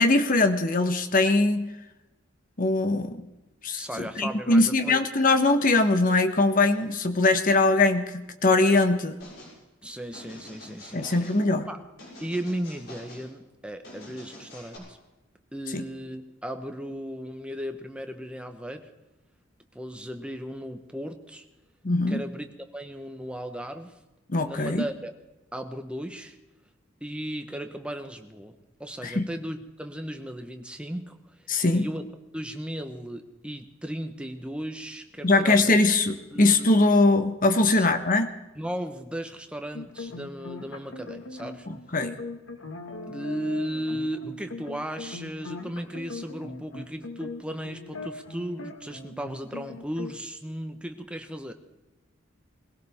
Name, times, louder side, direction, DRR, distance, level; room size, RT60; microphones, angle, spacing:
voice 1, 0.0-1.7 2.6-3.3 3.6-9.2 10.9-11.7 15.7-15.8 21.8-22.2 24.3-24.9 29.0-29.3 31.5-31.9 35.2-38.3 41.7-42.1, left 2 dB, 45° left, 8 dB, 1.3 m, -22 dB
voice 2, 3.8-5.1 9.8-11.1 11.7-11.8 12.2-15.0 15.5-18.9 19.7-21.5 22.1-24.0 24.4-25.1 25.5-26.4 27.0-28.5 28.8-31.5 31.7-35.8 36.3-36.6 37.6-37.9 38.5-41.7 43.1-51.5, equal, 5° right, 6 dB, 1.2 m, -36 dB
sound 1, 9.2-9.6 10.1-11.4 12.0-13.3 13.8-14.8, left 1 dB, 60° left, 7.4 m, -46 dB
sound 2, 39.7-50.1, left 3 dB, 85° left, 1.9 m, -40 dB
22.5 x 17.0 x 3.7 m, 1.0 s
head